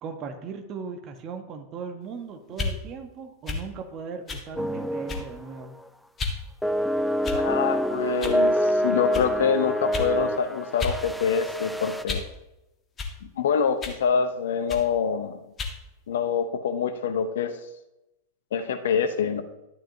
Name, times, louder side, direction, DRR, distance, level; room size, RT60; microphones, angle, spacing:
voice 1, 0.0-5.8, right 5 dB, 35° right, 5 dB, 1.3 m, -38 dB
sound 1, 2.5-2.8 3.5-3.7 4.3-4.5 5.1-5.4 6.2-6.4 7.2-7.6 8.2-8.4 9.1-9.3 9.9-10.1 10.8-11.0 11.4-12.3 13.0-13.2 13.8-14.0 14.7-14.9 15.6-15.8, left 4 dB, 25° left, 1.6 m, -32 dB
sound 2, 4.6-5.4 5.6-5.9 6.6-12.0, equal, ahead, 0.5 m, -26 dB
voice 2, 7.3-12.2 13.2-15.4 16.1-17.6 18.5-19.4, left 6 dB, 60° left, 9 dB, 0.8 m, -25 dB
12.0 x 10.0 x 2.8 m, 0.93 s
figure-of-eight pair, 90°, 0 cm